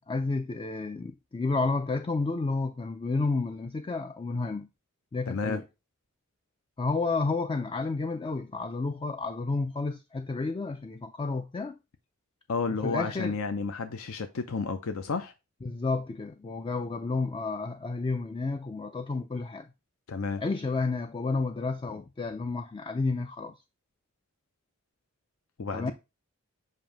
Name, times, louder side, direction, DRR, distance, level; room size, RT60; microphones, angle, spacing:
voice 1, 0.0-4.7 5.1-5.6 6.8-11.8 12.7-13.4 15.6-19.7 20.4-23.6 25.7-25.9, left 3 dB, 25° left, 0.3 m, -31 dB
voice 2, 5.3-5.6 12.5-15.3 20.1-20.4 25.6-25.9, left 4 dB, 70° left, 0.6 m, -31 dB
7.4 x 2.6 x 5.0 m
head